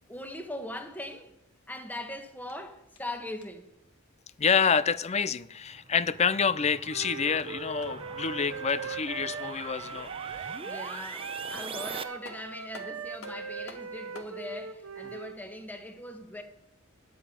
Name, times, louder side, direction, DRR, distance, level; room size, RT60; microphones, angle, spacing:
voice 1, 0.1-1.3 1.7-3.7 10.6-16.4, left 1 dB, 10° left, 1.5 m, -40 dB
sound 1, 2.5-3.8 6.8-9.0 11.3-11.4 11.8-14.4, left 3 dB, 75° left, 1.8 m, -52 dB
voice 2, 4.4-10.1, left 6 dB, 30° left, 0.5 m, -27 dB
sound 2, 5.5-12.0, right 5 dB, 25° right, 0.8 m, -42 dB
Wind instrument woodwind instrument, 6.9-10.9 11.2-15.4, right 5 dB, 65° right, 0.8 m, -40 dB
11.0 x 8.4 x 8.5 m
head